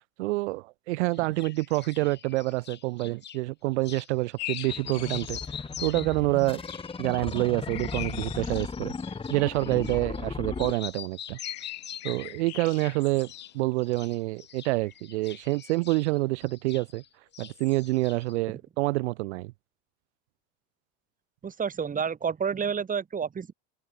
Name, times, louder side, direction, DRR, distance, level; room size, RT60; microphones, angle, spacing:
voice 1, 0.0-6.6 7.0-8.9 9.3-11.4 12.0-17.0 17.4-19.5, right 21 dB, 85° right, 1.1 m, -27 dB
sound 1, 1.1-3.4 3.8-4.1 4.4-10.3 10.6-12.4 12.7-13.5 13.8-17.1 17.3-18.4, left 9 dB, 30° left, 3.7 m, -44 dB
sound 2, 4.4-6.0 6.5-6.8 7.6-9.8 10.4-10.7 11.3-14.2 14.6-14.9, left 26 dB, 75° left, 4.6 m, -42 dB
sound 3, 4.7-10.7, left 4 dB, 15° left, 4.3 m, -36 dB
voice 2, 21.4-23.5, right 6 dB, 25° right, 5.3 m, -29 dB
supercardioid pair, 120°, 33 cm